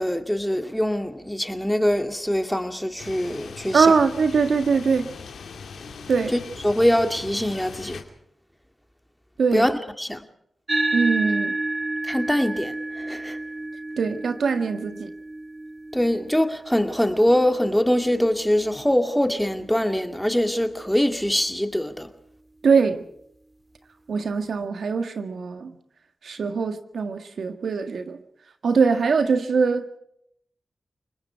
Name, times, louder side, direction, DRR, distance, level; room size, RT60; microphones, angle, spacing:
voice 1, 0.0-3.9 6.3-8.0 9.5-10.2 12.0-13.4 15.9-22.1, equal, 5° left, 2.3 m, -23 dB
sound 1, 3.0-8.0, left 5 dB, 90° left, 2.6 m, -40 dB
voice 2, 3.7-5.1 6.1-6.3 9.4-9.7 10.9-11.5 14.0-15.1 22.6-23.0 24.1-25.7 26.2-28.2 28.6-29.8, right 5 dB, 80° right, 1.7 m, -22 dB
sound 2, 10.7-19.4, right 2 dB, 30° right, 1.8 m, -31 dB
30.0 x 20.0 x 4.6 m
cardioid pair, 55°, 0 cm